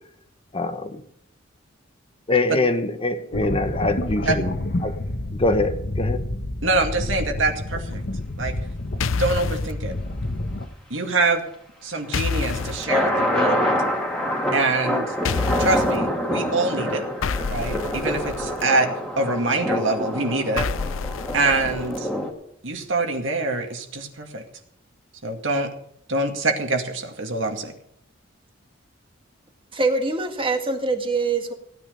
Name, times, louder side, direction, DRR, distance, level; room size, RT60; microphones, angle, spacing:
voice 1, 0.5-1.0 2.3-4.5 4.8-5.0 5.3-6.2, left 2 dB, 30° left, 8 dB, 1.1 m, -24 dB
sound 1, 3.3-10.7, left 1 dB, 55° left, 1.3 m, -28 dB
voice 2, 6.6-8.0 8.4-8.5 9.2-9.9 10.9-11.4 11.8-13.8 14.5-17.0 17.5-18.9 19.2-20.7 21.3-22.1 22.6-24.4 25.2-25.7 26.1-27.7, right 2 dB, 70° right, 4 dB, 2.2 m, -25 dB
sound 2, 9.0-9.7 12.1-12.8 15.2-16.0 17.2-18.6 20.6-22.0, left 5 dB, 85° left, 0.6 m, -28 dB
sound 3, 12.1-22.3, equal, 5° left, 2.3 m, -26 dB
voice 3, 29.7-31.5, right 3 dB, 25° right, 5 dB, 1.9 m, -24 dB
16.5 x 9.9 x 5.2 m, 0.74 s
head